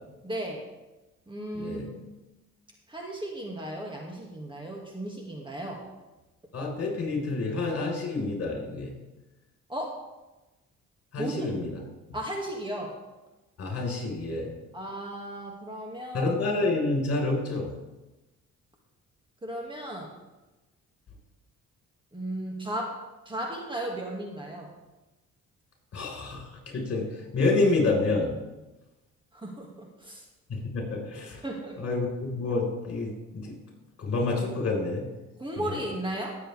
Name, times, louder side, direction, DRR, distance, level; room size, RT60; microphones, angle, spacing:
voice 1, 0.2-0.6 1.3-2.1 2.9-5.8 9.7-9.9 11.2-11.5 12.1-12.9 14.7-16.3 19.4-20.1 22.1-23.0 23.3-24.7 29.3-30.2 31.4-31.8 35.4-36.4, right 1 dB, 15° right, -1 dB, 2.2 m, -35 dB
voice 2, 1.5-1.9 6.5-8.9 11.1-11.7 13.6-14.5 16.1-17.7 25.9-26.4 26.7-27.1 27.3-28.3 30.5-31.4 31.8-33.6 34.0-35.0 35.6-35.8, left 3 dB, 50° left, 0 dB, 4.8 m, -28 dB
18.0 x 7.7 x 3.5 m, 1.1 s
cardioid pair, 90°, 30 cm